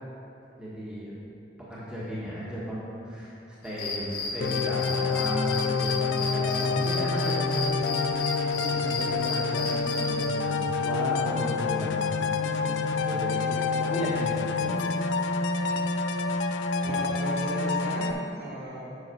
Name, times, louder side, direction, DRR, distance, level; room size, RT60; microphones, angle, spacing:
voice 1, 0.5-1.2 1.7-13.4 13.8-14.5 16.8-17.0, equal, 5° right, -8 dB, 1.3 m, -35 dB
sound 1, 3.6-10.3, left 4 dB, 50° left, 1.0 m, -34 dB
sound 2, 4.4-18.1, left 4 dB, 80° left, 0.4 m, -28 dB
voice 2, 12.3-13.0 13.3-14.1 14.6-15.0 15.7-15.9 16.8-18.8, equal, 60° right, -6 dB, 1.9 m, -38 dB
8.0 x 5.6 x 4.5 m, 2.8 s
head